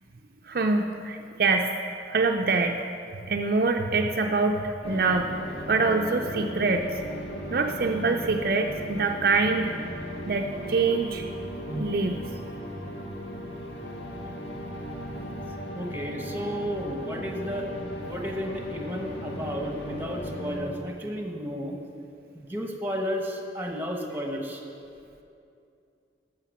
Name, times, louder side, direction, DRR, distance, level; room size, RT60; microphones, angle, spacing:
voice 1, 0.5-1.7 2.1-2.8 3.3-5.3 5.7-6.8 7.5-9.7 10.3-11.2 11.7-12.2, right 3 dB, 50° right, 3 dB, 0.5 m, -25 dB
sound 1, 4.8-20.6, equal, 75° left, 1.7 m, -37 dB
voice 2, 15.7-17.7 18.0-21.8 22.3-24.6, equal, 10° right, 1 dB, 1.1 m, -33 dB
11.5 x 6.7 x 7.0 m, 2.6 s
head